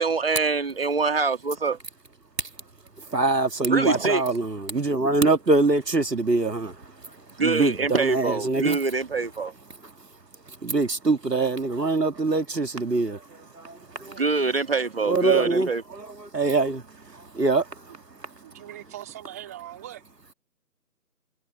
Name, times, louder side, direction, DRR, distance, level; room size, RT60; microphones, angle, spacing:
voice 1, 0.0-1.8 3.7-4.2 7.4-9.5 14.2-15.8, right 4 dB, 35° right, 2.0 m, -24 dB
voice 2, 3.0-8.8 9.7-10.1 10.5-14.3 15.1-18.6, right 3 dB, 75° right, 1.9 m, -25 dB
voice 3, 18.4-20.0, right 13 dB, 10° right, 2.6 m, -40 dB
figure-of-eight pair, 165°, 49 cm